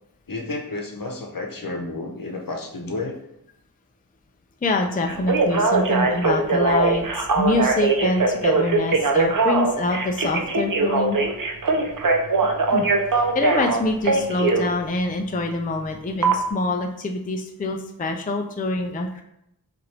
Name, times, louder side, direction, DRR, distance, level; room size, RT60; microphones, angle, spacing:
voice 1, 0.3-3.2, left 2 dB, 60° left, 2 dB, 0.9 m, -31 dB
voice 2, 4.6-11.2 12.7-12.9 13.2-19.2, left 2 dB, 25° left, 3 dB, 0.4 m, -25 dB
Telephone, 5.1-14.7 16.2-16.3, right 3 dB, 55° right, 0.7 m, -21 dB
5.7 x 2.6 x 3.2 m, 0.79 s
wide cardioid pair, 50°, 38 cm